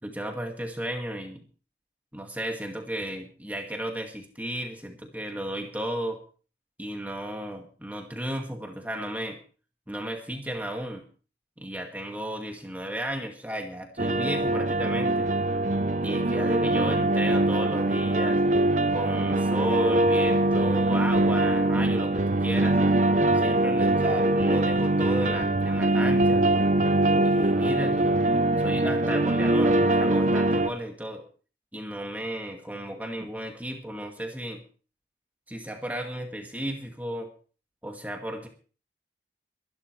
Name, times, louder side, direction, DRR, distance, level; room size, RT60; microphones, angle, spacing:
voice 1, 0.0-1.4 2.1-6.2 6.8-9.4 9.9-11.0 11.6-15.3 16.0-18.4 18.9-22.8 23.3-26.5 27.2-28.1 28.6-31.3 31.7-34.6 35.5-37.3 37.8-38.5, right 1 dB, 10° right, 2 dB, 2.1 m, -34 dB
sound 1, 14.0-30.7, right 2 dB, 45° right, 0.8 m, -23 dB
23.0 x 12.0 x 3.3 m, 0.38 s
head